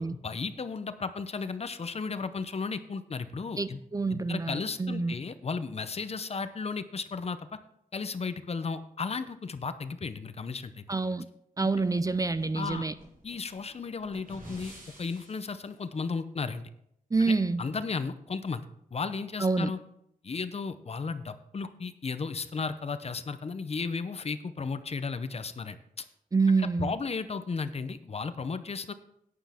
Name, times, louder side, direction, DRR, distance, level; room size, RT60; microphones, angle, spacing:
voice 1, 0.2-3.8 4.1-7.6 7.9-10.8 11.6-11.7 12.5-12.9 13.2-14.7 15.0-16.7 17.6-18.6 18.9-19.8 20.2-25.8 26.6-28.9, left 4 dB, 45° left, 12 dB, 0.6 m, -34 dB
voice 2, 3.6-5.1 10.9-11.3 11.6-12.9 17.1-17.6 19.4-19.7 26.3-26.9, right 3 dB, 25° right, 13 dB, 0.4 m, -27 dB
sound 1, 11.7-15.6, equal, 85° right, 5.0 m, -50 dB
11.5 x 9.6 x 3.6 m, 0.75 s
wide cardioid pair, 120°, 15 cm